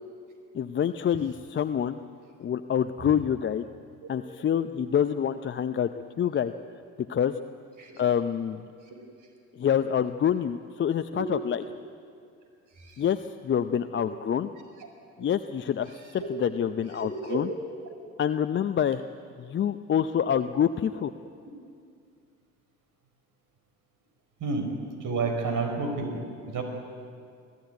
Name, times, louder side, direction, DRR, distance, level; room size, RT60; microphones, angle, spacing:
voice 1, 0.5-2.0 2.4-3.6 4.1-5.9 6.2-6.5 7.1-7.3 8.0-8.6 9.5-11.6 13.0-14.5 15.2-17.5 18.2-19.0 19.4-21.1, left 9 dB, 30° left, 10 dB, 0.7 m, -26 dB
voice 2, 17.0-17.4 17.9-18.0 24.4-24.7 25.0-26.6, right 4 dB, 45° right, 4 dB, 5.1 m, -31 dB
24.5 x 15.0 x 9.4 m, 2.3 s
hypercardioid pair, 65°, 42 cm